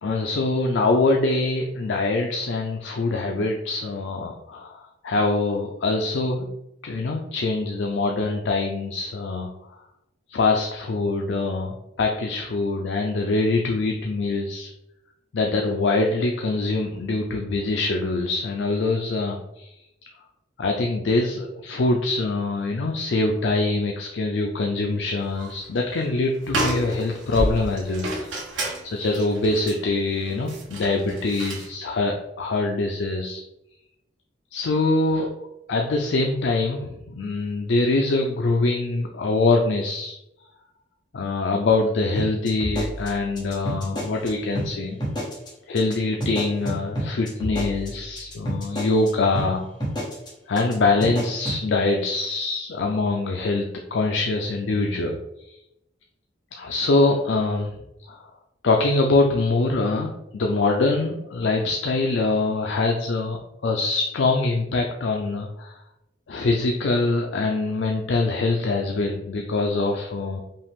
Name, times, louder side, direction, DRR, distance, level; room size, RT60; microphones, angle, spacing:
voice 1, 0.0-6.5 6.8-9.5 10.3-14.7 15.3-19.7 20.6-28.3 28.8-33.4 34.5-40.2 41.1-45.0 45.7-49.6 50.5-55.2 56.5-57.7 58.1-58.2 58.6-63.4 63.6-65.8 66.3-70.4, left 3 dB, 70° left, 2 dB, 0.4 m, -24 dB
sound 1, 25.2-25.7 26.0-26.1 26.4-31.7, right 1 dB, 80° right, 1.1 m, -30 dB
sound 2, 42.2-44.3 44.6-44.7 45.0-45.5 45.8-45.9 46.2-49.1 49.4-49.5 49.8-50.3 50.6-50.7 51.0-51.6, equal, 25° left, 1.4 m, -29 dB
5.3 x 2.4 x 3.6 m, 0.86 s
head